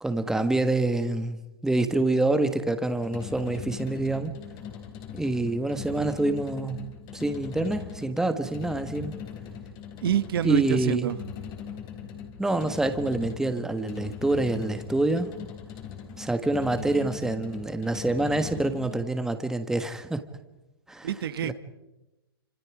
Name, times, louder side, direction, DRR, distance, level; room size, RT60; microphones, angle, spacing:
voice 1, 0.0-1.4 1.6-4.4 5.2-6.8 7.1-9.2 10.4-11.1 12.4-15.3 16.2-20.2 20.9-21.1 21.4-21.5, right 2 dB, 5° right, 8 dB, 1.4 m, -26 dB
sound 1, 2.9-19.1, left 8 dB, 35° left, 3.6 m, -40 dB
voice 2, 10.0-11.2 21.0-21.5, right 10 dB, 65° right, 13 dB, 1.1 m, -27 dB
28.0 x 26.5 x 4.9 m, 1.0 s
hypercardioid pair, 125°, 13 cm